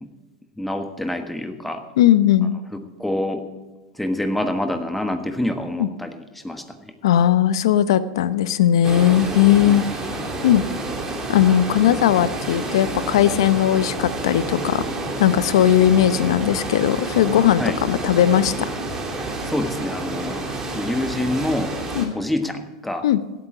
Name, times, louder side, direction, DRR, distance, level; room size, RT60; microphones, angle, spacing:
voice 1, 0.6-1.8 3.0-3.4 3.9-6.9 9.6-9.8 17.6-17.8 19.4-21.7 22.1-23.0, left 1 dB, 5° left, 6 dB, 1.4 m, -26 dB
voice 2, 2.0-2.5 5.8-5.9 7.0-9.8 10.4-10.6 11.3-14.8 15.2-18.7 21.9-22.1 23.0-23.2, left 11 dB, 80° left, 14 dB, 0.8 m, -18 dB
sound 1, 8.8-22.1, right 2 dB, 20° right, 2.6 m, -29 dB
16.5 x 8.8 x 5.0 m, 1.2 s
hypercardioid pair, 115°, 3 cm